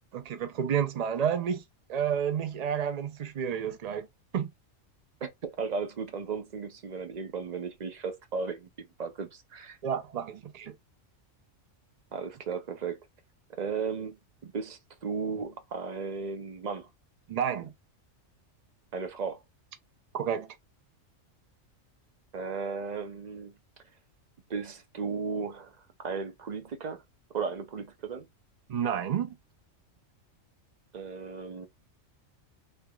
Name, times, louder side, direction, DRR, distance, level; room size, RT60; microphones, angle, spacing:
voice 1, 0.1-1.6 1.9-4.1 4.3-4.5 9.8-10.7 17.3-17.7 20.1-20.5 28.7-29.4, right 8 dB, 85° right, 0.3 m, -30 dB
voice 2, 5.2-8.7 9.0-9.8 12.1-13.0 13.5-16.9 18.9-19.4 22.3-23.5 24.5-25.7 26.0-27.0 27.3-28.3 30.9-31.7, right 5 dB, 45° right, 0.6 m, -35 dB
3.5 x 3.3 x 2.2 m
omnidirectional pair, 1.4 m